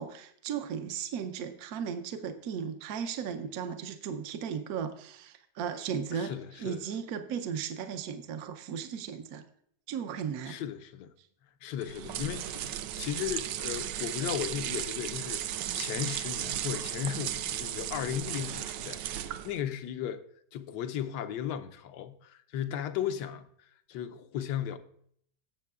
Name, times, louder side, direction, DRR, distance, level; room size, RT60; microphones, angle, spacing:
voice 1, 0.0-9.4 9.9-10.6, right 7 dB, 65° right, 1.1 m, -36 dB
voice 2, 6.1-6.8 10.5-11.1 11.6-15.4 15.7-20.2 20.5-23.5 23.9-24.8, left 10 dB, 80° left, 1.3 m, -36 dB
sound 1, 11.8-19.6, right 11 dB, 85° right, 1.2 m, -35 dB
17.5 x 7.5 x 2.4 m
omnidirectional pair, 1.9 m